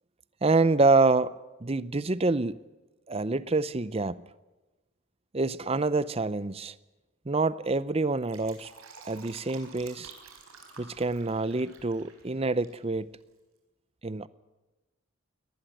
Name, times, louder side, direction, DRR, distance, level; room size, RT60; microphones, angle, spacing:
voice 1, 0.4-1.3 1.6-2.6 3.1-4.2 5.3-6.7 7.3-8.7 9.1-10.1 10.8-13.1 14.0-14.3, right 3 dB, 30° right, 0.6 m, -26 dB
Fill (with liquid), 8.1-12.8 13.1-13.2, right 5 dB, 90° right, 4.9 m, -51 dB
22.5 x 19.0 x 7.9 m
head